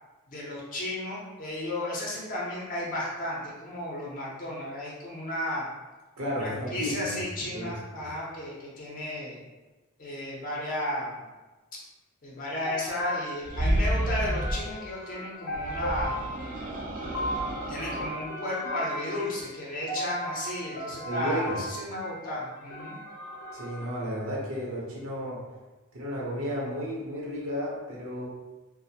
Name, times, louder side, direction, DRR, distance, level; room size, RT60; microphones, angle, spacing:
voice 1, 0.3-5.7 6.3-9.4 10.0-11.2 12.2-16.3 17.7-23.0, left 1 dB, 40° left, -4 dB, 0.5 m, -34 dB
voice 2, 6.2-7.2 7.5-7.7 8.0-8.1 21.0-21.6 23.5-25.4 25.9-28.3, equal, 70° right, -4 dB, 0.7 m, -33 dB
sound 1, 12.6-23.9, equal, 85° left, 0.5 m, -37 dB
sound 2, 13.4-14.7 15.5-18.2, right 1 dB, 40° right, 0.4 m, -30 dB
2.4 x 2.0 x 2.7 m, 1.2 s
head